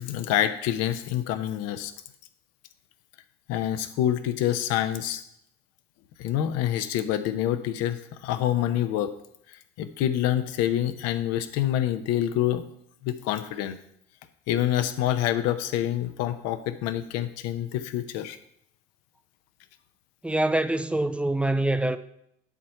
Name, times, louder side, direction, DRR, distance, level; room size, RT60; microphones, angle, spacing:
voice 1, 0.0-1.9 3.5-5.2 6.2-9.1 9.8-12.6 13.0-13.8 14.5-18.4, left 12 dB, 55° left, 0.8 m, -26 dB
voice 2, 20.2-22.0, right 1 dB, 5° right, 0.5 m, -25 dB
11.0 x 4.3 x 5.7 m
figure-of-eight pair, 60°, 31 cm